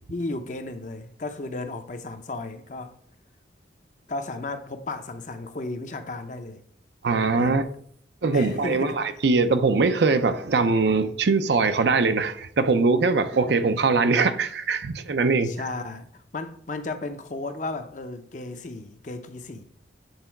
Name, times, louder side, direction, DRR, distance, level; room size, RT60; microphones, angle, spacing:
voice 1, 0.1-3.0 4.1-6.6 7.3-7.6 8.3-9.0 15.4-16.1 16.3-19.6, left 2 dB, 45° left, 0.6 m, -34 dB
voice 2, 7.0-7.6 8.2-15.5, right 4 dB, 70° right, 0.6 m, -22 dB
8.1 x 3.9 x 4.5 m
head